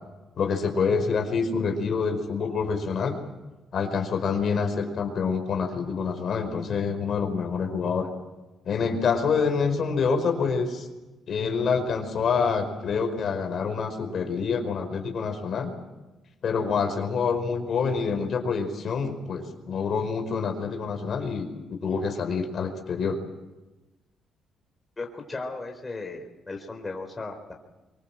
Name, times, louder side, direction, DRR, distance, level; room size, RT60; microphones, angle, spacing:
voice 1, 0.4-3.2 3.7-8.1 8.6-10.9 11.3-15.7 16.4-23.2, left 5 dB, 55° left, 5 dB, 5.0 m, -27 dB
voice 2, 25.0-27.5, left 3 dB, 25° left, 3 dB, 4.3 m, -36 dB
24.5 x 24.0 x 7.7 m, 1.1 s
cardioid pair, 90°, 0 cm